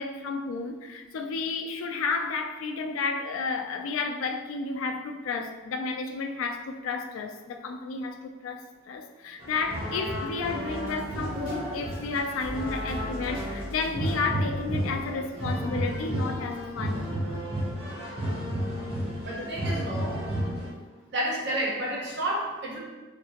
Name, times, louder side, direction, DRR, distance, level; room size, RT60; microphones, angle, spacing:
voice 1, 0.0-17.0, left 4 dB, 80° left, 0.3 m, -32 dB
sound 1, 9.4-20.7, equal, 30° right, 0.6 m, -32 dB
sound 2, 10.6-15.3 15.8-15.9 16.8-16.9, equal, 80° right, 1.4 m, -42 dB
voice 2, 11.4-11.8 19.2-20.2 21.1-22.8, right 1 dB, 55° right, 0.9 m, -31 dB
3.2 x 2.8 x 2.8 m
head